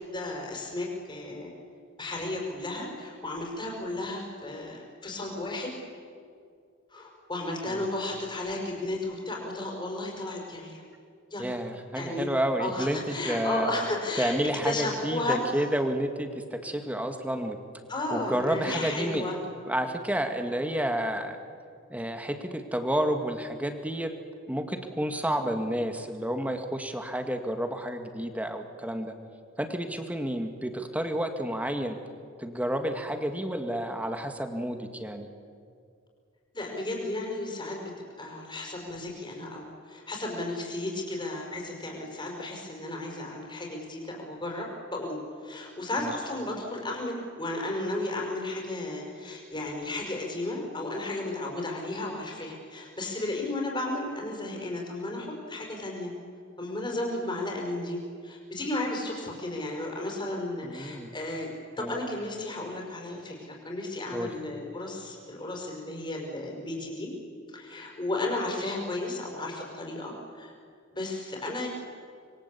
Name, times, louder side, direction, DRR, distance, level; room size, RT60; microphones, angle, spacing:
voice 1, 0.1-1.5 2.0-5.7 6.9-10.8 11.3-11.5 11.9-12.3 12.6-14.4 14.6-15.4 17.9-19.4 36.5-37.9 38.2-56.1 56.6-61.5 61.8-67.1 67.5-70.5 70.9-71.7, left 2 dB, 25° left, -1 dB, 5.6 m, -34 dB
voice 2, 11.4-13.7 14.2-17.6 18.1-19.3 19.7-21.4 21.9-24.1 24.5-29.1 29.6-32.0 32.4-35.3 46.0-46.1 60.6-61.1 61.8-61.9 64.1-64.4, right 1 dB, 5° right, 6 dB, 1.9 m, -30 dB
26.5 x 22.5 x 8.5 m, 2.3 s
head